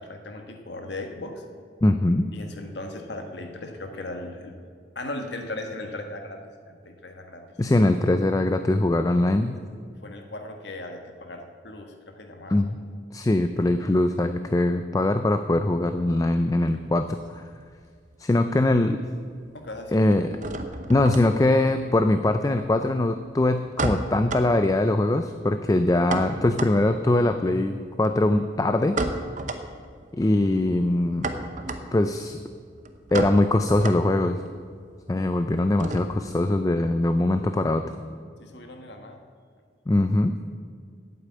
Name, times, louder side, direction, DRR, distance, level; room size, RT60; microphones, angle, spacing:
voice 1, 0.0-1.4 2.3-4.6 4.9-7.4 10.0-12.6 18.2-18.6 19.5-20.0 38.4-39.2, left 2 dB, 65° left, 4 dB, 1.4 m, -37 dB
voice 2, 1.8-2.3 7.6-9.6 12.5-12.8 13.1-17.4 18.2-19.0 19.9-20.4 20.9-29.0 30.1-31.3 31.9-32.4 33.1-34.4 35.1-37.8 39.9-40.4, left 2 dB, 20° left, 8 dB, 0.3 m, -22 dB
sound 1, 16.5-18.1 18.4-19.1 19.4-36.4, right 2 dB, 40° right, 0.7 m, -34 dB
8.6 x 8.3 x 8.4 m, 2.1 s
head